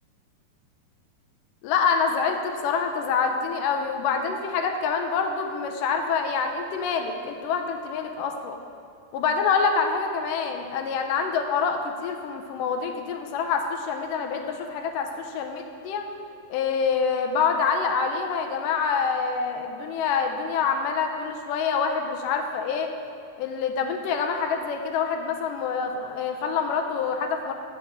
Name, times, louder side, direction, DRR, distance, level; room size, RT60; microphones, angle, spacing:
voice 1, 1.6-8.6 9.1-16.1 16.5-22.9 23.4-27.5, left 5 dB, 80° left, 4 dB, 2.1 m, -26 dB
7.0 x 6.5 x 6.4 m, 2.4 s
omnidirectional pair, 4.2 m